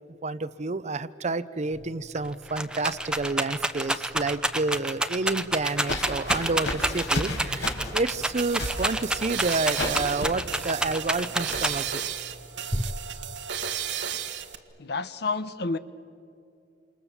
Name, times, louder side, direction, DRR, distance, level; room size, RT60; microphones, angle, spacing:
voice 1, 0.2-12.0, right 3 dB, 40° right, 14 dB, 0.7 m, -29 dB
Rattle, 1.8-1.9 2.2-12.1 12.7-13.3, right 1 dB, 5° right, 0.8 m, -29 dB
sound 1, 5.6-11.7, left 1 dB, 80° left, 4.5 m, -34 dB
sound 2, 8.1-14.5, right 8 dB, 75° right, 1.5 m, -34 dB
voice 2, 14.8-15.8, left 3 dB, 65° left, 13 dB, 0.9 m, -29 dB
28.0 x 27.5 x 7.2 m, 2.6 s
head